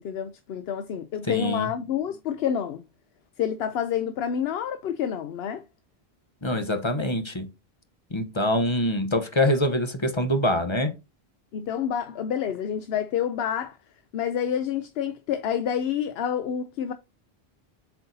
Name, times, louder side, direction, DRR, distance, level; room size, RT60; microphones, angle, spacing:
voice 1, 0.0-2.8 3.4-5.6 11.5-13.8 14.1-16.9, left 9 dB, 80° left, 0.8 m, -28 dB
voice 2, 1.3-1.7 6.4-7.5 8.1-11.0, left 1 dB, 30° left, 0.9 m, -24 dB
7.7 x 4.6 x 2.6 m
omnidirectional pair, 1.0 m